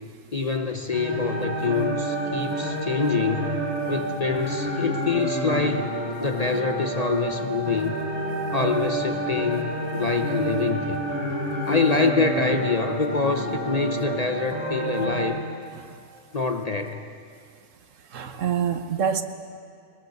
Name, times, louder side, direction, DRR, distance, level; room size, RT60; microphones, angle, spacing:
voice 1, 0.3-3.6 3.9-8.0 8.5-11.0 11.7-15.4 16.3-17.0, left 4 dB, 35° left, 5 dB, 0.8 m, -26 dB
sound 1, 0.9-15.2, right 1 dB, 15° right, 6.9 m, -29 dB
voice 2, 18.1-19.2, right 7 dB, 70° right, 9 dB, 1.3 m, -26 dB
22.0 x 21.0 x 6.5 m, 2.3 s
omnidirectional pair, 1.4 m